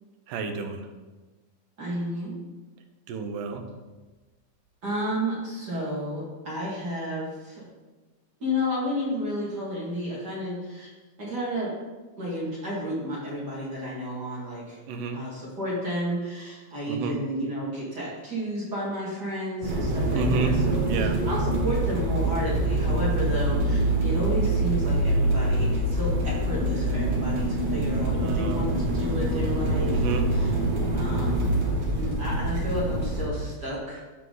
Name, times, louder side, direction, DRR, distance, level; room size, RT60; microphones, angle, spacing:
voice 1, 0.3-0.8 3.1-3.6 14.9-15.2 16.9-17.2 20.1-20.5 20.9-21.1 28.2-28.6 29.9-30.2, right 4 dB, 75° right, 5 dB, 2.3 m, -30 dB
voice 2, 1.8-2.3 4.8-7.6 8.4-10.9 11.2-11.7 12.2-14.8 15.1-30.5 30.9-31.6 32.0-34.0, equal, 35° right, -6 dB, 2.2 m, -31 dB
sound 1, 19.6-33.3, right 1 dB, 60° right, 2.2 m, -25 dB
14.0 x 4.8 x 3.9 m, 1.2 s
omnidirectional pair, 4.0 m